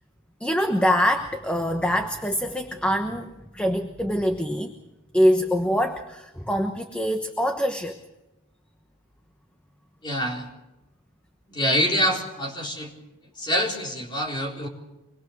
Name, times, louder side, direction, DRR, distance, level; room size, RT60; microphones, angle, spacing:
voice 1, 0.4-4.7 5.1-8.0, equal, 5° left, 5 dB, 1.0 m, -24 dB
voice 2, 10.0-10.5 11.5-12.9 13.4-14.7, equal, 20° left, 0 dB, 4.2 m, -25 dB
25.5 x 21.5 x 6.5 m, 0.99 s
head